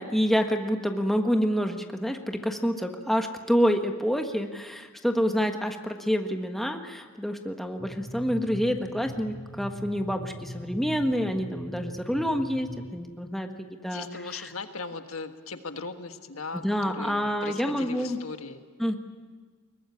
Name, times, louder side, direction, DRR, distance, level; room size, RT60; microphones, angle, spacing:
voice 1, 0.0-14.1 16.5-18.2 18.8-19.0, equal, ahead, 4 dB, 1.4 m, -27 dB
sound 1, 7.8-12.9, equal, 30° left, 3.0 m, -40 dB
voice 2, 13.9-18.6, left 4 dB, 75° left, 7 dB, 1.5 m, -38 dB
22.0 x 19.5 x 9.8 m, 1.5 s
head